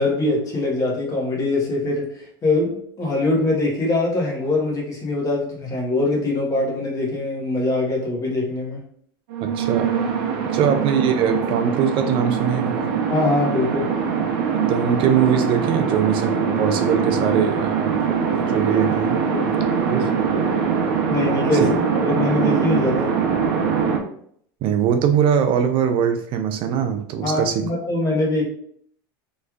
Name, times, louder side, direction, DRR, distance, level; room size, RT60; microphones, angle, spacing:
voice 1, 0.0-8.8 13.1-13.9 19.3-19.5 21.1-23.1 27.2-28.4, left 2 dB, 30° left, -2 dB, 1.2 m, -23 dB
sound 1, 9.3-24.0, right 6 dB, 75° right, 0.7 m, -22 dB
voice 2, 9.4-10.0 10.5-12.9 14.5-19.2 19.9-20.2 21.6-21.7 24.6-27.7, right 7 dB, 45° right, 8 dB, 0.3 m, -22 dB
3.2 x 3.1 x 2.4 m, 0.65 s
supercardioid pair, 120°, 12 cm